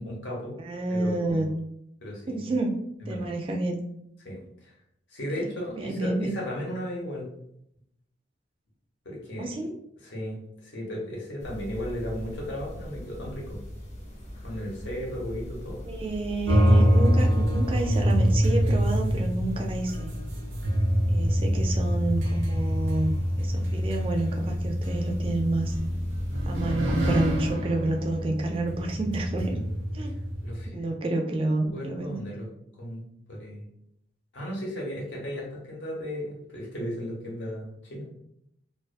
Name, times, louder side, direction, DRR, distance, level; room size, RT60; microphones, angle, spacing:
voice 1, 0.0-0.6 0.9-1.5 2.0-2.6 3.0-3.3 4.2-4.7 5.1-7.3 9.0-9.5 10.0-13.6 14.4-15.8 21.3-21.5 30.4-31.2 31.7-32.5 32.8-33.0 33.3-33.6 34.3-38.1, equal, 75° left, -3 dB, 0.9 m, -35 dB
voice 2, 0.6-1.5 2.3-2.7 3.1-3.8 5.4-6.3 9.4-9.8 15.8-20.1 21.1-25.7 26.5-29.5 29.9-30.1 30.7-32.2, right 2 dB, 30° right, 1 dB, 0.3 m, -29 dB
sound 1, 11.4-27.5, equal, 35° left, 0.5 m, -40 dB
sound 2, 16.5-30.7, equal, 90° right, 0.5 m, -25 dB
2.3 x 2.3 x 2.4 m, 0.75 s
head